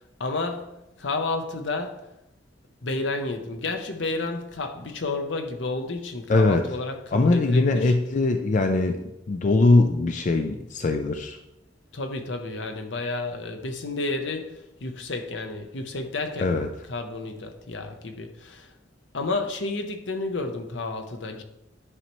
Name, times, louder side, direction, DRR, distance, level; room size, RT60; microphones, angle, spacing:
voice 1, 0.2-0.7 1.0-2.0 2.8-7.9 11.9-16.6 16.9-18.7 19.1-21.4, left 3 dB, 70° left, 0.8 m, -31 dB
voice 2, 6.3-6.6 7.1-9.0 9.3-11.4 16.4-16.7, left 2 dB, 40° left, 0.4 m, -21 dB
9.8 x 5.5 x 3.1 m
head